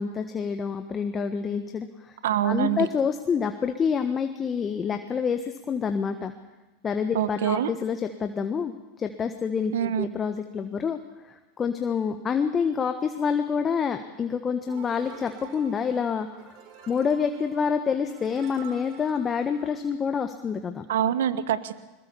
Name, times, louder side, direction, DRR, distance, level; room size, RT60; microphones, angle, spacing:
voice 1, 0.0-2.2 2.4-6.3 6.8-8.7 9.0-11.0 11.3-16.3 16.9-20.8, left 6 dB, 25° left, 7 dB, 1.4 m, -27 dB
voice 2, 2.2-2.9 7.1-7.7 9.7-10.1 20.9-21.7, right 10 dB, 75° right, 13 dB, 1.2 m, -25 dB
sound 1, 14.7-20.2, right 7 dB, 55° right, 4.0 m, -48 dB
22.0 x 21.5 x 7.1 m, 1.1 s
hypercardioid pair, 95°, 0 cm